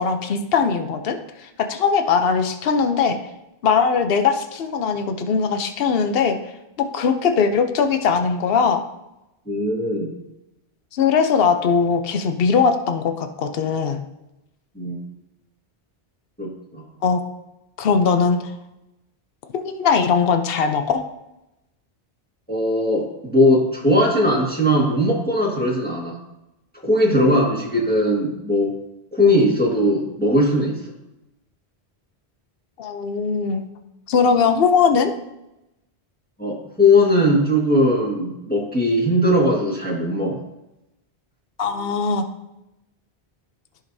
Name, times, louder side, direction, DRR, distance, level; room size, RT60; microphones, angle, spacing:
voice 1, 0.0-3.2 3.6-6.4 6.8-8.8 10.9-14.0 17.0-17.2 17.8-18.5 19.5-21.0 27.2-27.3 32.8-33.6 34.1-35.1 41.6-42.3, left 5 dB, 65° left, 7 dB, 0.9 m, -20 dB
voice 2, 9.5-10.1 14.7-15.1 16.4-16.8 22.5-26.2 26.8-28.7 29.1-30.8 36.4-40.4, left 1 dB, 10° left, -4 dB, 1.7 m, -19 dB
14.0 x 5.2 x 2.7 m, 0.92 s
omnidirectional pair, 1.1 m